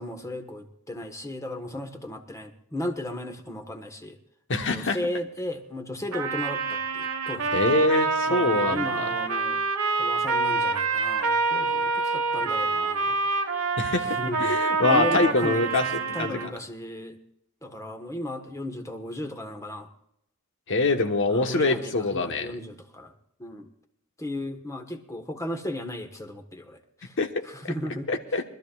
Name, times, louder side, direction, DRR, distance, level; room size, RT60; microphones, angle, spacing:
voice 1, 0.0-4.2 4.7-7.5 8.3-9.6 10.0-13.2 14.0-17.2 17.6-19.9 21.3-23.1 23.4-23.7 24.2-27.2 27.5-28.1, left 1 dB, 15° left, 5 dB, 1.3 m, -35 dB
voice 2, 4.5-5.0 7.5-9.1 13.8-16.4 20.7-22.5 27.2-27.7 28.1-28.4, left 2 dB, 60° left, 6 dB, 1.2 m, -25 dB
Trumpet, 6.1-16.5, right 3 dB, 80° right, 1.3 m, -26 dB
24.0 x 13.0 x 2.4 m, 0.75 s
head